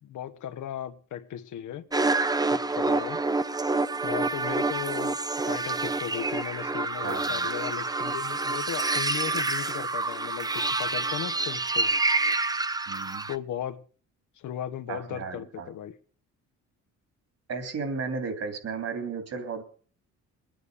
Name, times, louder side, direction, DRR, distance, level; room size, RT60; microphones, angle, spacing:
voice 1, 0.0-1.9 2.5-3.2 4.0-5.2 5.5-11.9 13.3-13.8 14.4-16.0, left 10 dB, 75° left, 1.2 m, -36 dB
sound 1, 1.9-13.4, right 3 dB, 15° right, 0.7 m, -27 dB
voice 2, 7.0-7.5 12.9-13.3 14.9-15.7 17.5-19.6, right 5 dB, 55° right, 3.2 m, -34 dB
21.0 x 9.4 x 5.0 m
cardioid pair, 90°, 30 cm